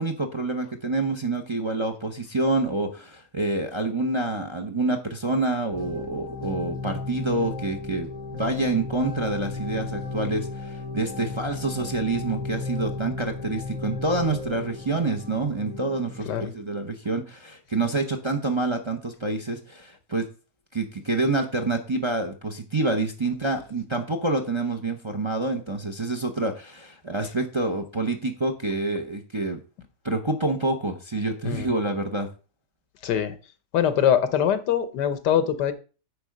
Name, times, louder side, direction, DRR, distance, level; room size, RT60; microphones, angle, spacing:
voice 1, 0.0-20.3 20.7-29.6 30.0-32.3, right 2 dB, 35° right, 3 dB, 0.5 m, -27 dB
sound 1, 5.7-16.4, left 3 dB, 55° left, 2.7 m, -35 dB
voice 2, 33.0-33.4 33.7-35.7, left 9 dB, 80° left, 11 dB, 1.6 m, -23 dB
9.6 x 3.4 x 6.4 m, 0.34 s
omnidirectional pair, 1.8 m